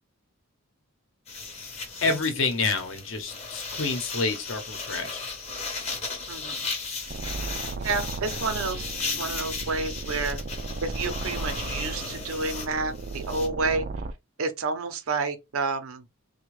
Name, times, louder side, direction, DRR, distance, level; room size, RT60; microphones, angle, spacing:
sound 1, 1.3-13.5, left 4 dB, 30° left, 0.8 m, -36 dB
voice 1, 2.0-5.2, left 3 dB, 65° left, 0.8 m, -28 dB
voice 2, 6.3-6.6 7.8-8.8 9.1-10.4 10.8-13.9 14.4-16.1, right 3 dB, 80° right, 0.6 m, -29 dB
sound 2, 7.1-14.1, right 3 dB, 40° right, 0.3 m, -35 dB
3.5 x 2.2 x 3.1 m
head